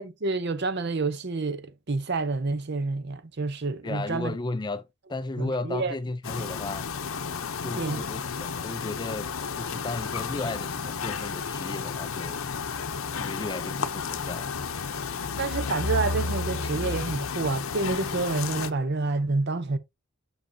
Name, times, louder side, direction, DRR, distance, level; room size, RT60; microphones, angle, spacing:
voice 1, 0.0-4.4 5.4-5.9 7.8-8.0 15.4-19.8, right 3 dB, 50° right, 0.7 m, -28 dB
voice 2, 3.8-6.9 7.6-12.5 13.2-14.5, left 2 dB, 20° left, 0.4 m, -35 dB
sound 1, 6.2-18.7, left 5 dB, 75° left, 0.7 m, -32 dB
7.5 x 6.3 x 2.7 m
head